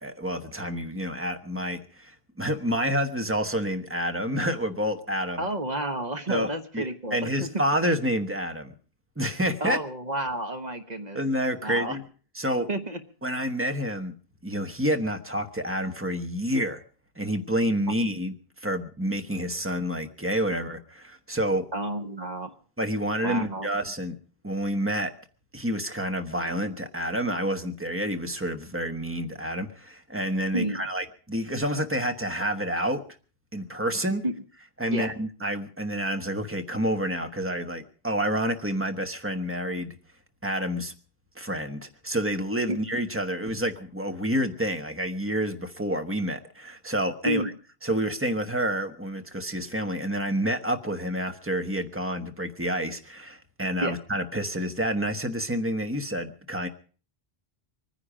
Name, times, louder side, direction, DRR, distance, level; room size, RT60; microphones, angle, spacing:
voice 1, 0.0-5.4 6.3-8.7 9.2-9.8 11.1-12.0 12.3-12.7 13.2-14.1 14.4-16.8 17.2-18.3 18.6-21.7 22.8-24.1 24.4-25.1 25.5-33.0 33.5-34.2 34.8-39.9 40.4-40.9 41.4-47.4 47.8-56.7, equal, 15° right, 7 dB, 1.1 m, -28 dB
voice 2, 5.4-7.5 9.6-11.2 11.6-12.0 12.7-13.0 17.9-18.0 21.7-22.5 23.2-23.7 30.5-30.8 34.2-34.4 34.9-35.1 42.7-42.8 47.2-47.5 53.8-53.9, right 1 dB, 45° right, 7 dB, 1.3 m, -30 dB
24.0 x 10.0 x 5.0 m, 0.40 s
omnidirectional pair, 1.0 m